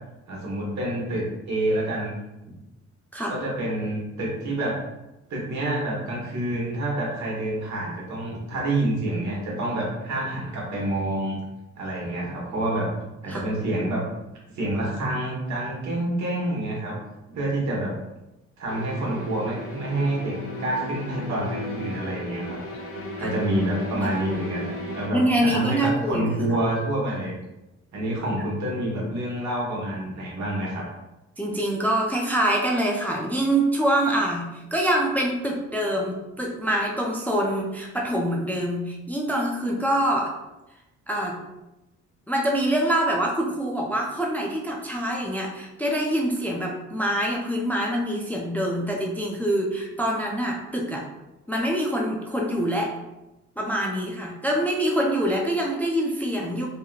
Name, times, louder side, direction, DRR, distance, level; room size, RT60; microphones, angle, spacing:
voice 1, 0.3-2.2 3.3-4.8 5.3-11.4 11.8-14.0 14.5-17.0 17.3-17.9 18.6-22.6 23.2-27.3 27.9-30.8, right 1 dB, 65° right, -3 dB, 1.2 m, -28 dB
sound 1, 18.7-25.1, left 1 dB, 50° left, 0.8 m, -35 dB
voice 2, 23.2-23.5 23.9-24.5 25.1-26.6 31.4-40.3 41.1-41.4 42.3-51.0 51.5-52.9 53.6-56.7, right 1 dB, 5° left, -1 dB, 0.4 m, -25 dB
2.9 x 2.7 x 2.3 m, 0.97 s
cardioid pair, 90°, 30 cm